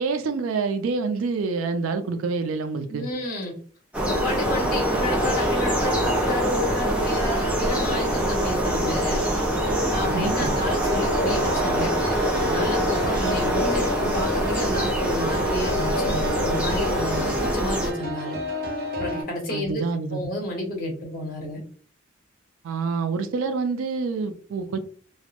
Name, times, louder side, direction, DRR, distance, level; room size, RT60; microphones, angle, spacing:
voice 1, 0.0-3.1 10.0-10.5 19.5-20.2 22.6-24.8, right 4 dB, 85° right, 0.4 m, -27 dB
voice 2, 2.9-3.5 4.0-9.2 9.9-11.9 12.4-18.4 19.0-19.8 20.1-21.6, left 1 dB, 45° left, 1.0 m, -30 dB
sound 1, 3.9-17.9, equal, 5° right, 0.5 m, -24 dB
sound 2, 9.6-19.2, left 1 dB, 50° right, 0.6 m, -31 dB
2.2 x 2.0 x 2.8 m
head